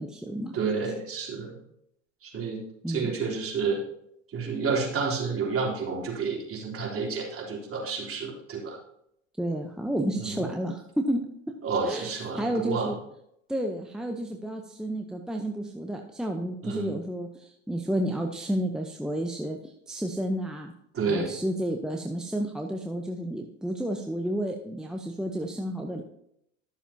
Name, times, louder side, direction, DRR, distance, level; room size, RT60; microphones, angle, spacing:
voice 1, 0.0-0.6 2.8-3.1 9.4-11.2 11.5-11.6 11.8-13.0 13.5-20.7 21.0-26.0, right 1 dB, ahead, 2 dB, 0.8 m, -31 dB
voice 2, 0.5-1.6 2.2-3.8 4.3-8.8 10.2-10.4 11.6-12.9 16.6-16.9 20.9-21.3, right 4 dB, 35° right, -3 dB, 3.5 m, -30 dB
13.0 x 7.0 x 2.9 m, 0.74 s
hypercardioid pair, 80°, 38 cm